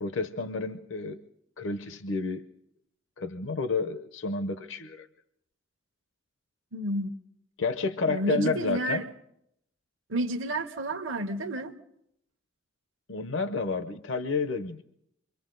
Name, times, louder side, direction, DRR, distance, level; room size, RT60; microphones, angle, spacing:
voice 1, 0.0-1.2 1.6-2.4 3.2-5.1 7.6-9.1 13.1-14.8, left 4 dB, 65° left, 10 dB, 0.8 m, -30 dB
voice 2, 6.7-7.1 8.1-9.1 10.1-11.7, right 1 dB, 70° right, 5 dB, 1.0 m, -30 dB
27.5 x 24.5 x 3.9 m, 0.76 s
head